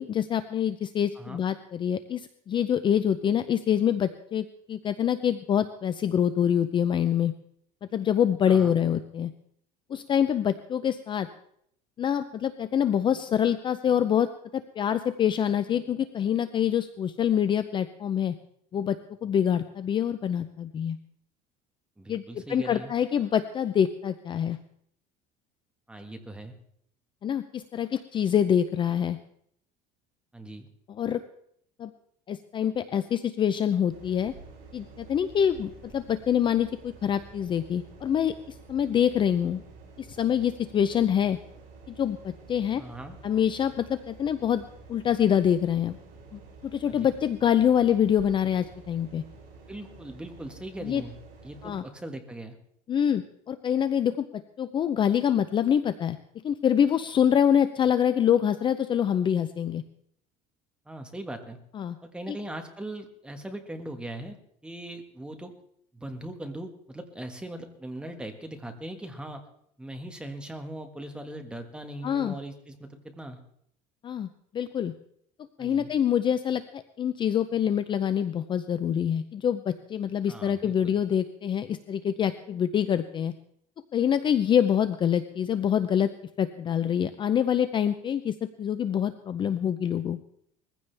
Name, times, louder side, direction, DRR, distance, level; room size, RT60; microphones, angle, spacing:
voice 1, 0.0-7.3 7.9-9.3 9.9-11.3 12.0-18.3 18.7-21.0 22.1-22.2 22.5-24.6 27.2-29.2 31.0-31.2 31.8-31.9 32.3-34.3 34.7-39.6 40.0-41.4 41.9-42.8 43.2-44.6 44.9-46.0 46.3-46.4 46.7-49.2 50.8-51.0 51.6-51.8 52.9-56.2 56.4-59.8 61.8-62.0 72.0-72.4 74.0-74.3 74.5-74.9 75.6-83.3 83.9-86.1 86.4-90.2, left 9 dB, 30° left, 12 dB, 0.5 m, -25 dB
voice 2, 8.5-8.8 22.0-22.9 25.9-26.5 30.3-30.7 42.8-43.2 46.9-47.1 49.7-51.1 51.4-52.6 60.8-61.6 62.0-64.4 64.6-65.5 65.9-69.4 69.8-73.4 75.6-75.9 80.3-81.0, right 1 dB, 5° right, 5 dB, 1.6 m, -40 dB
sound 1, 33.9-51.8, right 4 dB, 55° right, 6.8 m, -49 dB
21.0 x 15.0 x 3.4 m, 0.68 s
cardioid pair, 145°, 17 cm